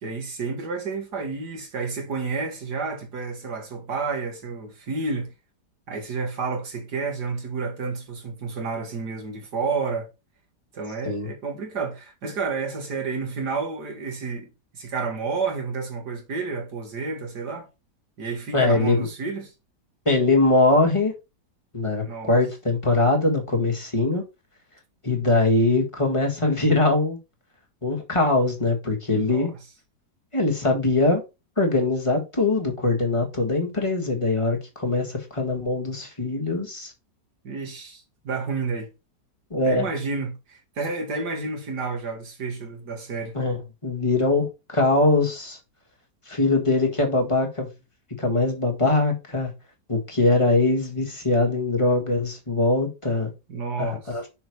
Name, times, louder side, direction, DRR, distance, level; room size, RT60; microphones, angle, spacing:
voice 1, 0.0-5.3 5.9-10.1 10.7-17.7 18.2-19.5 22.0-22.4 29.1-29.5 37.4-38.9 39.7-43.3 53.5-54.2, right 4 dB, 70° right, 2.5 m, -30 dB
voice 2, 18.5-19.1 20.0-21.1 21.7-24.2 25.0-27.2 27.8-29.5 30.3-31.2 31.6-36.9 39.5-39.9 43.3-45.6 46.3-47.7 48.2-49.5 49.9-53.3 53.8-54.2, left 2 dB, 20° left, 1.7 m, -22 dB
6.2 x 4.7 x 4.7 m
omnidirectional pair, 1.9 m